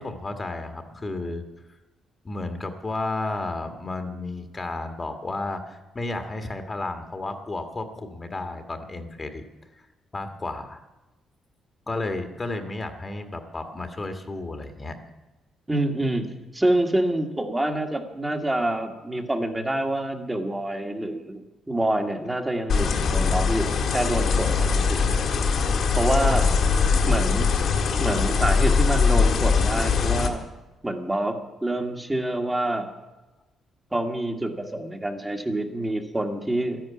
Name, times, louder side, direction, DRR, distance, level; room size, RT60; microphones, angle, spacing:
voice 1, 0.0-1.4 1.7-1.8 2.2-9.4 9.7-9.8 10.1-10.8 11.9-15.0 19.1-19.2 26.3-26.5, left 2 dB, 25° left, 6 dB, 1.7 m, -32 dB
voice 2, 15.7-21.4 21.7-25.2 25.9-26.5 27.1-27.6 28.0-30.4 30.8-32.9 33.9-36.8, right 1 dB, 15° right, 3 dB, 1.8 m, -27 dB
sound 1, 22.7-30.3, left 5 dB, 65° left, 2.2 m, -21 dB
13.0 x 11.0 x 8.5 m, 1.1 s
cardioid pair, 90°, 0 cm